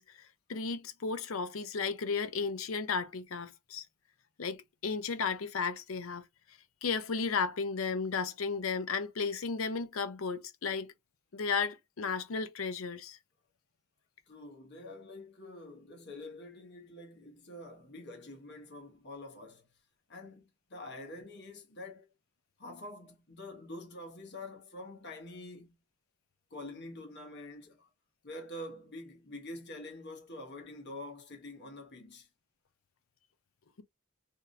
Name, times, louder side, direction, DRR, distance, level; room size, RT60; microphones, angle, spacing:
voice 1, 0.0-3.8 4.4-6.2 6.8-10.9 11.3-13.2, left 5 dB, 80° left, 0.6 m, -34 dB
voice 2, 14.3-19.8 20.1-22.1 22.6-25.8 26.5-27.9 28.2-32.3, left 1 dB, 55° left, 1.2 m, -46 dB
3.5 x 2.7 x 2.3 m
head